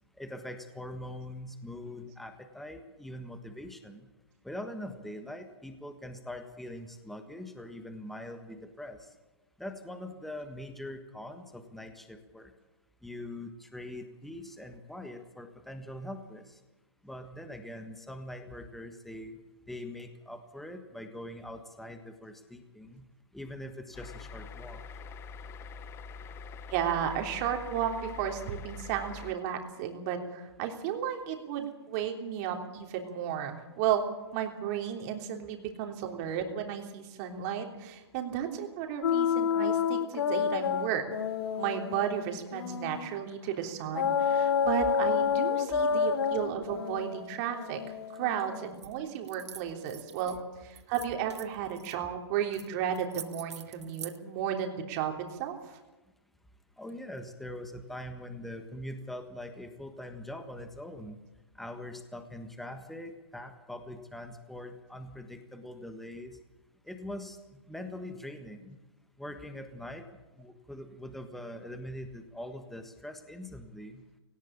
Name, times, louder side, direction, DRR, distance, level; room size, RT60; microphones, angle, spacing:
voice 1, 0.2-4.1 4.4-9.1 9.6-12.5 13.0-16.6 17.0-19.4 19.7-23.1 23.3-24.8 56.8-61.2 61.5-66.4 66.9-68.8 69.2-70.0 70.4-74.0, left 1 dB, ahead, 7 dB, 1.5 m, -43 dB
sound 1, 23.9-29.3, left 5 dB, 15° left, 1.0 m, -44 dB
voice 2, 26.7-34.1 34.3-41.1 41.6-55.6, right 9 dB, 35° right, 3 dB, 3.3 m, -33 dB
sound 2, 39.0-43.2 43.9-48.7, left 7 dB, 60° left, 1.6 m, -29 dB
sound 3, 48.7-48.9 49.2-50.4 50.8-51.9 52.5-52.7 52.9-54.2, right 7 dB, 75° right, 1.3 m, -45 dB
18.0 x 18.0 x 8.8 m, 1.1 s
hypercardioid pair, 140°, 15 cm